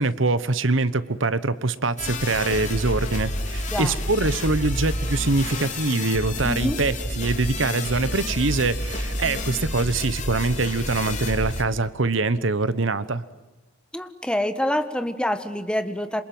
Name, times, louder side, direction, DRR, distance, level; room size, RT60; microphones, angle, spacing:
voice 1, 0.0-13.2, right 3 dB, 70° right, 15 dB, 1.2 m, -24 dB
sound 1, 2.0-11.6, left 1 dB, 40° left, 4.2 m, -29 dB
voice 2, 6.4-6.8 13.9-16.2, left 1 dB, 5° left, 9 dB, 1.5 m, -26 dB
28.0 x 27.0 x 7.8 m, 1.1 s
head